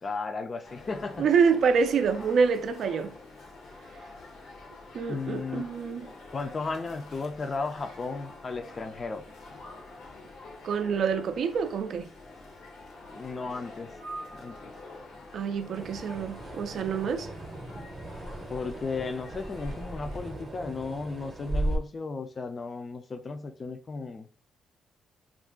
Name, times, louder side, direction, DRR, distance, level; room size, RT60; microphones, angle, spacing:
voice 1, 0.0-1.3 5.1-5.7 6.3-9.2 13.1-13.9 14.3-14.7 18.5-24.5, left 4 dB, 35° left, 0.4 m, -35 dB
sound 1, 0.6-20.6, left 2 dB, 75° left, 0.8 m, -47 dB
voice 2, 1.2-3.1 4.9-6.1 10.6-12.1 15.3-17.3, right 6 dB, 65° right, 0.3 m, -26 dB
sound 2, 15.7-21.8, right 1 dB, 30° right, 0.7 m, -36 dB
2.4 x 2.2 x 3.6 m
cardioid pair, 90°, 0 cm